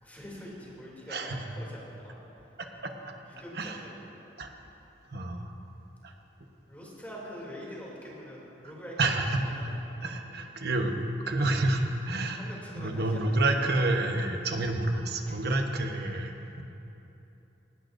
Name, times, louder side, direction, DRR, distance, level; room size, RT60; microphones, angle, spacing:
voice 1, 0.0-2.1 3.2-4.0 6.7-9.0 9.5-10.2 12.4-13.2 15.3-15.4, equal, 10° left, -5 dB, 2.9 m, -44 dB
voice 2, 1.1-1.4 2.8-2.9 3.5-3.8 4.4-4.5 5.1-5.5 6.0-6.1 9.0-9.5 10.0-12.5 12.8-16.6, right 2 dB, 60° right, 3 dB, 1.2 m, -29 dB
18.5 x 17.5 x 2.6 m, 3.0 s
head